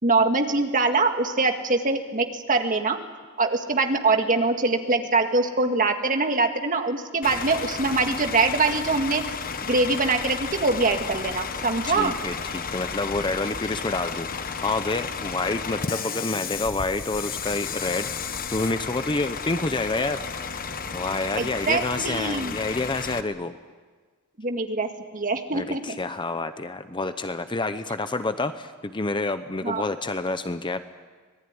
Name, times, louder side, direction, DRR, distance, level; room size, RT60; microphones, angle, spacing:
voice 1, 0.0-3.0 3.4-9.2 9.7-12.1 21.4-22.6 24.4-25.8 29.6-29.9, right 3 dB, 35° right, 5 dB, 1.9 m, -23 dB
Bus / Idling, 7.2-23.2, left 5 dB, 40° left, 1.1 m, -33 dB
voice 2, 11.9-20.2 20.9-23.5 25.5-30.8, left 3 dB, 20° left, 10 dB, 0.8 m, -28 dB
25.5 x 19.0 x 9.7 m, 1.5 s
head